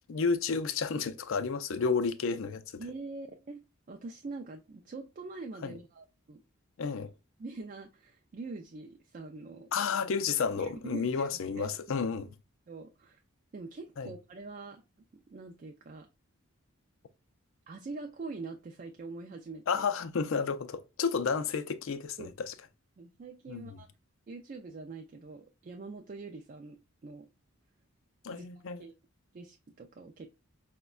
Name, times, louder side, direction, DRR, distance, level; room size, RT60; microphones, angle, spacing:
voice 1, 0.1-2.6 5.6-5.8 6.8-7.1 9.7-12.3 14.0-14.1 19.7-22.5 23.5-23.7 28.2-28.8, left 5 dB, 60° left, 0.4 m, -31 dB
voice 2, 2.8-3.6 3.9-6.4 7.4-9.7 10.6-11.8 12.7-13.2 13.5-14.8 15.3-16.1 17.7-19.9 22.2-22.3 23.0-23.9 24.3-27.3 28.3-28.5 28.8-28.9 29.3-30.3, right 3 dB, 40° right, 0.3 m, -44 dB
5.0 x 2.1 x 2.3 m
head